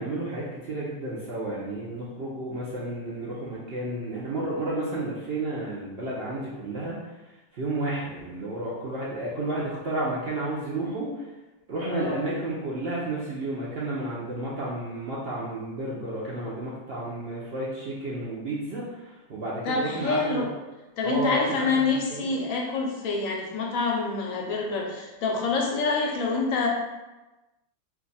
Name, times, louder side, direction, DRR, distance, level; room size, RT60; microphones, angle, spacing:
voice 1, 0.0-7.1 7.5-11.2 11.7-20.4 21.0-22.3, right 2 dB, 60° right, -6 dB, 0.6 m, -32 dB
voice 2, 11.8-12.2 19.6-20.5 21.0-26.7, left 4 dB, 70° left, -1 dB, 0.9 m, -27 dB
2.6 x 2.4 x 3.9 m, 1.1 s
omnidirectional pair, 1.6 m